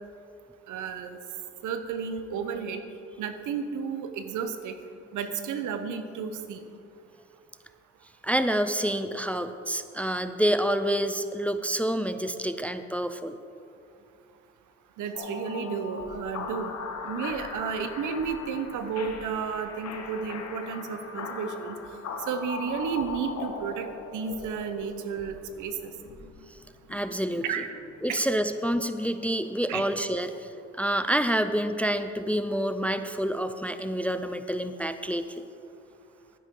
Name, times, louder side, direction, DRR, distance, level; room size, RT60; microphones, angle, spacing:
voice 1, 0.7-1.2 1.6-2.8 3.2-4.7 5.1-6.7 15.0-16.7 17.0-21.8 22.3-23.9 24.1-25.9 27.4-27.7 28.1-28.2 29.7-29.8, right 6 dB, 80° right, 8 dB, 0.9 m, -32 dB
voice 2, 8.2-13.4 26.5-26.6 26.9-27.4 28.0-35.4, equal, 5° left, 10 dB, 0.4 m, -28 dB
sound 1, 15.1-28.3, left 4 dB, 60° left, 1.2 m, -40 dB
12.0 x 10.0 x 3.8 m, 2.5 s
cardioid pair, 90°, 30 cm